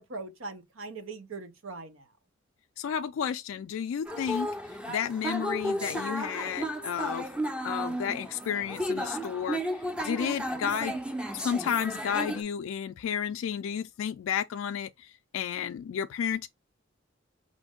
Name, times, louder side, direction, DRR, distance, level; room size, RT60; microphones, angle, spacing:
voice 1, 0.0-2.1 4.1-4.2, right 3 dB, 90° right, 0.8 m, -41 dB
voice 2, 2.8-4.5 4.9-7.3 7.6-9.6 10.0-11.0 11.3-16.5, left 8 dB, 90° left, 0.3 m, -32 dB
sound 1, 4.0-12.4, equal, 5° right, 0.5 m, -33 dB
5.1 x 2.6 x 3.5 m
head